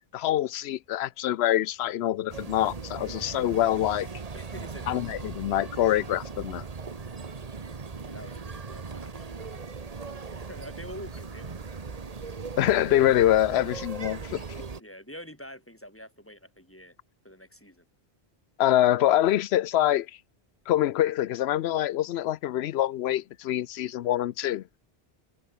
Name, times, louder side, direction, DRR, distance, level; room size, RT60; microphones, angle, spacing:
voice 1, 0.1-4.1 4.9-6.6 12.6-14.4 18.6-20.1 20.7-24.6, left 12 dB, 85° left, 0.8 m, -25 dB
sound 1, 2.3-14.8, right 4 dB, 40° right, 1.1 m, -39 dB
voice 2, 4.3-5.0 8.0-9.5 9.8-11.8 13.4-13.6 14.8-17.0 17.2-17.9, equal, 10° left, 7.2 m, -46 dB
omnidirectional pair, 1.0 m